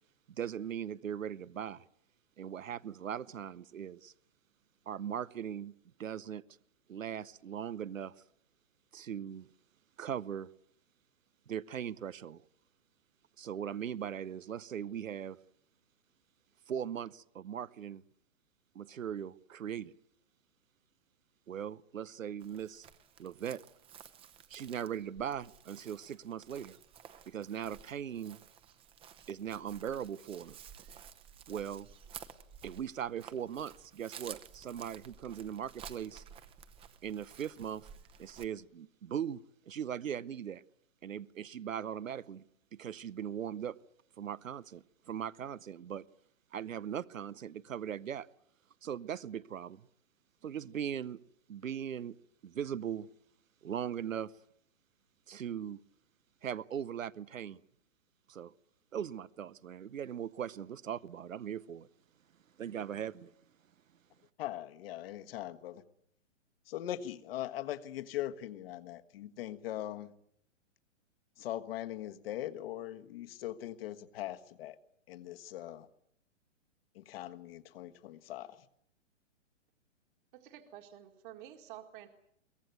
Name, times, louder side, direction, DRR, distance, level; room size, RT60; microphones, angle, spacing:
voice 1, 0.4-1.8 2.4-4.1 4.9-5.7 6.0-6.4 6.9-8.1 8.9-9.5 10.0-10.5 11.5-12.4 13.4-15.4 16.7-18.0 18.7-19.9 21.5-22.9 23.2-23.6 24.5-26.8 27.3-28.4 29.3-30.6 31.5-31.9 32.6-36.2 37.0-37.9 38.2-39.4 39.7-40.6 41.0-42.5 42.7-43.8 44.2-46.0 46.5-48.3 48.8-49.8 50.4-51.2 51.5-52.2 52.4-53.1 53.6-54.3 55.3-55.8 56.4-57.6 58.3-58.5 58.9-61.9 62.6-63.3, right 9 dB, 90° right, 16 dB, 0.8 m, -39 dB
Chirp tweet, 22.4-38.5, right 8 dB, 15° right, 0.9 m, -53 dB
voice 2, 64.4-65.8 66.7-70.1 71.4-74.8 75.1-75.9 76.9-78.6, left 13 dB, 50° left, 9 dB, 1.5 m, -41 dB
voice 3, 80.3-82.1, right 12 dB, 40° right, 5 dB, 2.0 m, -50 dB
23.0 x 17.0 x 9.3 m, 0.72 s
hypercardioid pair, 135°, 38 cm